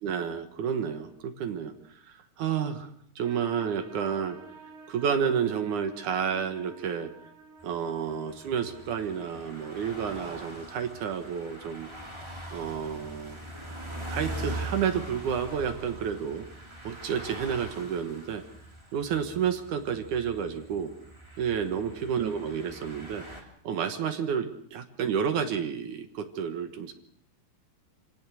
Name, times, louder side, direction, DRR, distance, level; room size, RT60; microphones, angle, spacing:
voice 1, 0.0-1.7 2.0-4.4 4.9-7.1 7.6-11.9 12.5-13.4 14.1-16.5 16.8-18.4 18.9-20.9 21.4-23.3 23.6-26.9, right 7 dB, 65° right, 8 dB, 2.3 m, -30 dB
sound 1, 3.2-9.3, right 4 dB, 80° right, 4.7 m, -50 dB
sound 2, 7.6-23.4, right 1 dB, 10° right, 2.3 m, -42 dB
25.5 x 17.5 x 6.3 m, 0.63 s
omnidirectional pair, 4.6 m